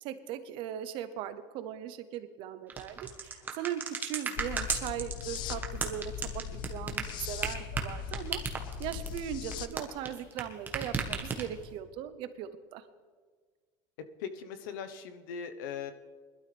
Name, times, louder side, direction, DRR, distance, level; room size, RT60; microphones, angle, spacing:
voice 1, 0.0-8.4 8.8-12.8, right 10 dB, 55° right, 12 dB, 0.8 m, -39 dB
sound 1, 2.7-10.4 10.7-11.7, right 5 dB, 15° right, 1.3 m, -34 dB
sound 2, 4.4-9.7, left 9 dB, 45° left, 0.6 m, -40 dB
voice 2, 14.0-15.9, left 7 dB, 75° left, 10 dB, 1.0 m, -40 dB
20.5 x 12.0 x 3.4 m, 1.5 s
supercardioid pair, 140°, 10 cm